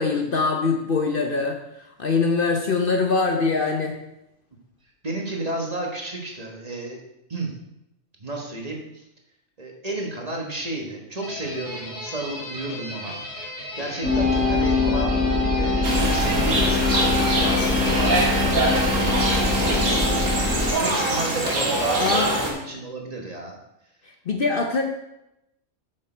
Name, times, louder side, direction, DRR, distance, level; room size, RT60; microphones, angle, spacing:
voice 1, 0.0-4.0 22.0-22.3 24.0-24.8, left 4 dB, 50° left, 3 dB, 0.9 m, -23 dB
voice 2, 5.0-7.0 7.3-7.5 8.2-8.8 9.6-15.1 15.5-18.6 19.0-19.2 19.6-23.6, right 2 dB, 30° right, 0 dB, 1.4 m, -32 dB
sound 1, 11.2-22.2, left 1 dB, 35° left, 2.4 m, -35 dB
sound 2, 14.0-20.7, left 3 dB, 10° left, 1.5 m, -23 dB
sound 3, 15.8-22.5, right 2 dB, 90° right, 2.1 m, -24 dB
8.2 x 6.7 x 4.4 m, 0.85 s
omnidirectional pair, 1.3 m